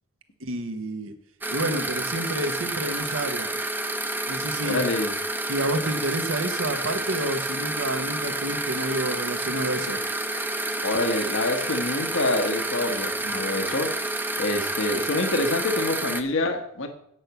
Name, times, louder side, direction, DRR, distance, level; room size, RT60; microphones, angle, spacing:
voice 1, 0.4-1.1 1.5-3.5 4.3-4.9 5.5-10.0, right 1 dB, 70° right, 7 dB, 1.2 m, -29 dB
sound 1, 1.4-16.2, right 2 dB, 10° right, 0.7 m, -29 dB
voice 2, 4.6-5.1 10.8-13.9 14.4-16.9, left 2 dB, 65° left, 5 dB, 1.2 m, -26 dB
9.0 x 5.9 x 8.0 m, 0.74 s
head